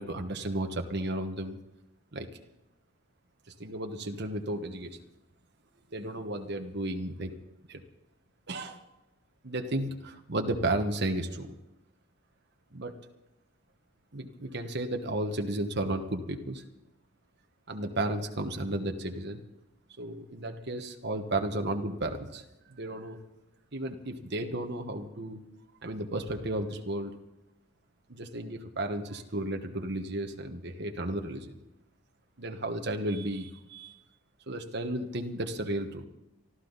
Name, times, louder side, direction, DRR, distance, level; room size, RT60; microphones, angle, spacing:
voice 1, 0.0-1.6 2.1-2.3 3.6-5.0 5.9-7.4 7.7-7.8 8.5-8.8 9.4-11.5 12.7-12.9 14.1-16.6 17.7-19.4 20.0-22.4 22.7-23.2 23.7-25.4 25.8-27.1 28.1-31.6 32.4-34.0 34.5-36.0, right 1 dB, 50° right, 4 dB, 1.3 m, -33 dB
24.0 x 13.5 x 4.1 m, 0.96 s
head